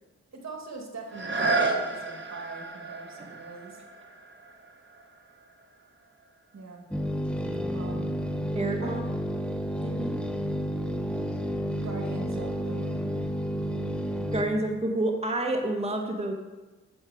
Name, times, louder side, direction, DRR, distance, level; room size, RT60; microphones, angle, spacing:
voice 1, 0.3-3.8 6.5-6.9 7.7-8.2 8.8-9.1 11.7-13.1, right 3 dB, 60° right, 2 dB, 2.0 m, -42 dB
sound 1, 1.1-6.7 7.3-7.4, right 3 dB, 35° right, 1.4 m, -33 dB
sound 2, 6.9-14.5, equal, 5° left, 1.0 m, -31 dB
voice 2, 8.5-9.0 9.8-10.2 14.3-16.3, right 1 dB, 20° right, 3 dB, 1.3 m, -29 dB
8.7 x 7.4 x 4.9 m, 1.2 s
cardioid pair, 45°, 31 cm